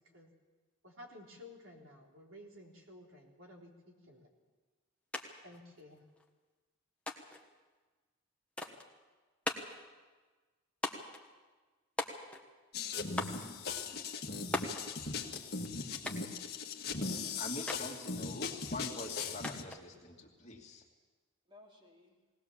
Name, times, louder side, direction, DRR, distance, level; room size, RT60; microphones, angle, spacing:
voice 1, 0.8-4.3 5.4-6.0, left 1 dB, 70° right, -1 dB, 3.7 m, -54 dB
sound 1, 5.1-5.3 5.5-6.3 7.1-7.5 8.6-8.9 9.5-9.8 10.8-11.2 12.0-12.5 13.2-13.5 14.5-14.9 16.1-16.4 17.7-17.9 19.4-19.8, left 2 dB, 5° left, 1.3 m, -38 dB
sound 2, 12.7-19.6, left 4 dB, 50° left, 1.6 m, -39 dB
voice 2, 13.8-15.2 21.5-22.2, left 1 dB, 25° right, 0 dB, 3.1 m, -62 dB
voice 3, 17.4-20.8, left 1 dB, 30° left, -1 dB, 2.5 m, -44 dB
19.5 x 19.0 x 7.3 m, 1.3 s
head